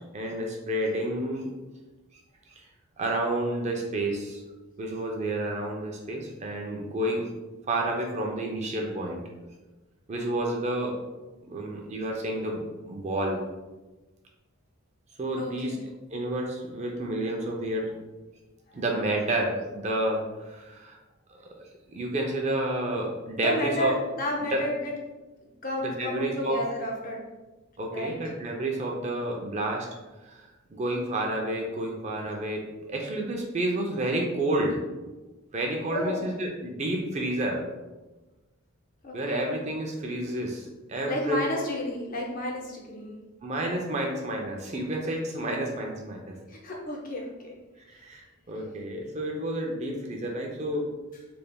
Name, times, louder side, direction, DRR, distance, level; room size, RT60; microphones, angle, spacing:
voice 1, 0.1-1.5 2.5-2.6 3.0-4.4 4.8-7.3 7.7-9.2 10.1-11.0 11.5-13.4 15.2-15.8 16.1-17.9 18.7-21.0 21.3-21.5 21.9-23.9 24.5-24.6 25.8-26.6 27.8-29.9 30.2-32.6 32.9-34.8 35.5-37.7 39.1-41.4 43.4-46.3 47.9-50.9, right 1 dB, 30° right, 0 dB, 0.4 m, -30 dB
voice 2, 15.4-15.8 18.7-18.8 23.4-24.9 25.6-27.2 27.9-28.2 35.9-36.2 39.0-39.5 41.0-43.2 46.5-47.5, left 1 dB, 40° left, 0 dB, 0.5 m, -31 dB
3.4 x 3.3 x 2.2 m, 1.1 s
head